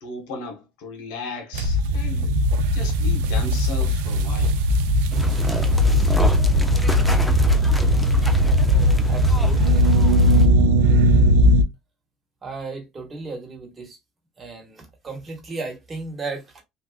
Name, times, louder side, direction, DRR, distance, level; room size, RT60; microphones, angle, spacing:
voice 1, 0.0-2.4 2.6-4.6, left 3 dB, 80° left, 1.2 m, -35 dB
sound 1, 1.5-11.6, equal, 85° right, 0.4 m, -18 dB
sound 2, 5.1-10.5, equal, 5° left, 0.6 m, -31 dB
voice 2, 9.0-9.9 12.4-14.0 14.4-16.6, right 3 dB, 25° right, 1.4 m, -35 dB
3.4 x 2.5 x 2.4 m
supercardioid pair, 110°, 0 cm